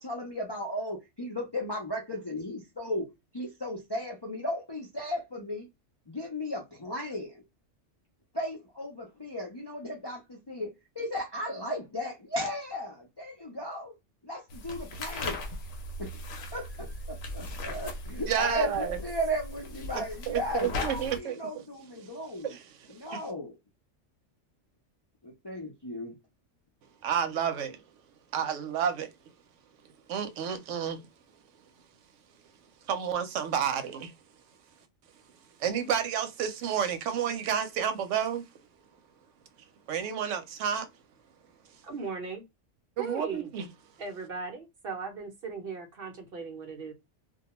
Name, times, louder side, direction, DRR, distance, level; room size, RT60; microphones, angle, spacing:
voice 1, 0.0-3.1 3.3-5.7 6.1-7.4 8.3-10.7 11.0-13.9 14.2-15.5 16.0-16.2 16.5-22.5 22.9-23.5 25.2-26.1, equal, 30° left, 0.4 m, -35 dB
sound 1, 14.5-21.2, left 2 dB, 75° left, 0.9 m, -38 dB
voice 2, 18.3-19.0 20.3-21.4 22.0-22.1 22.4-23.3 27.0-27.8 28.3-29.1 30.1-31.0 32.9-34.1 35.6-38.4 39.9-40.9 43.0-43.7, right 8 dB, 90° right, 0.9 m, -30 dB
voice 3, 41.8-42.4 43.0-43.5 44.0-46.9, right 5 dB, 55° right, 0.8 m, -37 dB
2.2 x 2.2 x 2.9 m
omnidirectional pair, 1.3 m